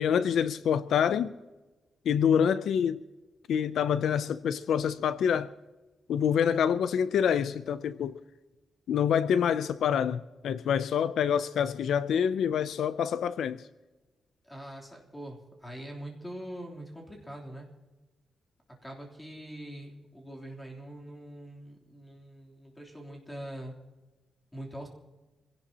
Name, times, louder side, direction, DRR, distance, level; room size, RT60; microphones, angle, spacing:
voice 1, 0.0-1.3 2.1-3.0 3.5-5.5 6.1-8.2 8.9-13.6, left 8 dB, 90° left, 0.5 m, -26 dB
voice 2, 14.4-17.7 18.8-23.7 24.5-24.9, right 1 dB, 10° left, 3.3 m, -43 dB
26.0 x 17.0 x 2.9 m
wide cardioid pair, 155°, 0 cm